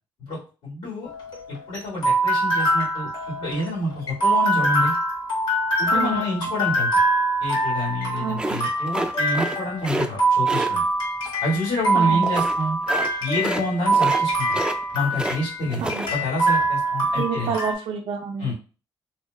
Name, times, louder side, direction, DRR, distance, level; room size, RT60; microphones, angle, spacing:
voice 1, 0.2-1.1 1.5-3.1 3.4-4.9 5.8-6.9 7.4-10.8 11.4-12.8 13.2-14.6 14.9-17.5 18.4-18.5, left 1 dB, 90° left, -6 dB, 1.7 m, -28 dB
sound 1, 1.1-17.7, right 2 dB, 65° left, 1.3 m, -24 dB
voice 2, 5.9-6.2 8.2-8.6 11.9-12.2 15.8-16.1 17.1-18.5, right 6 dB, 65° right, 1 dB, 0.5 m, -29 dB
sound 2, 8.4-9.6 9.8-10.1 10.5-10.7 12.2-12.6 12.9-13.1 13.4-13.7 13.9-14.2 14.5-15.4 15.7-16.1, right 2 dB, 10° right, 0.4 m, -28 dB
3.0 x 2.0 x 3.7 m, 0.36 s
cardioid pair, 100°, 9 cm